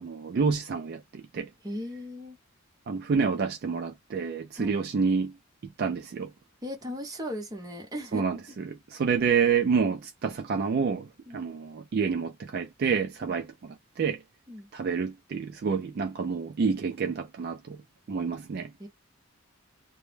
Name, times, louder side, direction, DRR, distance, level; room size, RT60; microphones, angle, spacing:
voice 1, 0.0-1.5 2.9-5.3 5.6-6.3 8.1-8.4 8.6-11.1 11.3-14.2 14.7-17.8 18.1-18.7, right 5 dB, 50° right, 0.3 m, -28 dB
voice 2, 1.6-2.4 4.6-4.8 6.6-8.6 11.3-11.4 13.2-13.4 14.5-14.7 18.8-18.9, left 1 dB, 20° right, 0.8 m, -37 dB
2.1 x 2.0 x 3.2 m
head